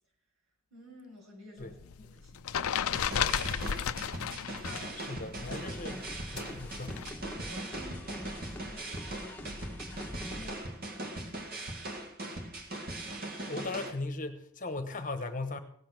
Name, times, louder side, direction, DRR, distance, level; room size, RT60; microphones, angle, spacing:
voice 1, 0.7-2.8 4.6-5.1 6.9-11.3, equal, 75° right, -1 dB, 6.3 m, -53 dB
sound 1, 1.6-4.9 5.2-7.1, left 8 dB, 70° left, 0.5 m, -33 dB
sound 2, 2.9-13.9, right 1 dB, 45° right, 1.9 m, -40 dB
voice 2, 5.0-6.1 6.3-7.0 13.5-15.6, left 2 dB, 35° left, 8 dB, 1.1 m, -38 dB
sound 3, 5.3-10.6, left 1 dB, 5° left, 1.2 m, -45 dB
17.5 x 7.5 x 6.1 m, 0.65 s
head